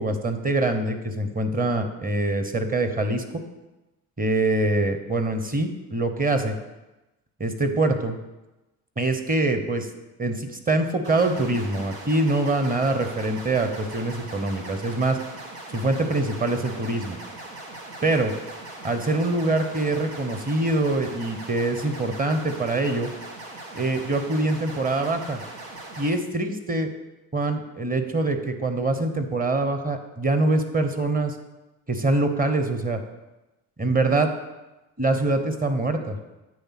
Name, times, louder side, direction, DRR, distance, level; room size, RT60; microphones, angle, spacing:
voice 1, 0.0-3.4 4.2-6.5 7.4-8.2 9.0-9.9 10.2-15.2 15.7-17.2 18.0-18.3 18.8-23.1 23.8-25.4 26.0-26.9 27.3-31.4 31.9-33.0 33.8-34.3 35.0-36.2, right 2 dB, 20° right, 7 dB, 1.0 m, -24 dB
sound 1, 11.0-26.1, right 2 dB, 80° right, 1.4 m, -40 dB
8.5 x 3.4 x 5.9 m, 1.0 s
hypercardioid pair, 60°, 44 cm